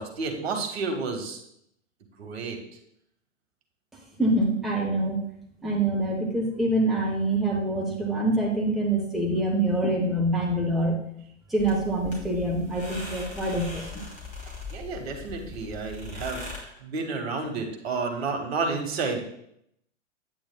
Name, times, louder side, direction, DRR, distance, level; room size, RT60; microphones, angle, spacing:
voice 1, 0.0-1.4 2.2-2.6 14.4-19.2, right 4 dB, 55° right, 3 dB, 1.5 m, -31 dB
voice 2, 4.2-5.2 5.6-11.0 11.5-14.0, right 1 dB, ahead, -3 dB, 0.8 m, -25 dB
sound 1, 11.6-16.6, left 4 dB, 20° left, 2.7 m, -40 dB
9.0 x 8.6 x 2.3 m, 0.73 s
figure-of-eight pair, 100°, 37 cm